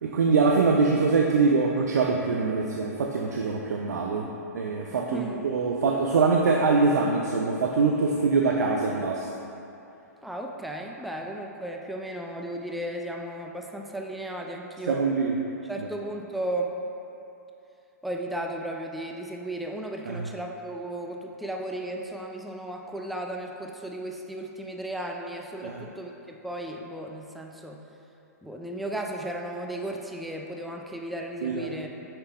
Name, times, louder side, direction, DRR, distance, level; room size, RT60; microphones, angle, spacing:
voice 1, 0.0-4.3 4.5-9.3 14.9-15.3 20.1-20.2 25.6-25.8 31.4-31.7, right 4 dB, 80° right, 1 dB, 0.5 m, -24 dB
voice 2, 4.9-5.4 10.2-15.1 15.7-16.7 18.0-27.8 28.4-32.1, right 1 dB, ahead, 1 dB, 0.3 m, -35 dB
5.8 x 5.5 x 3.4 m, 2.9 s
hypercardioid pair, 125°, 9 cm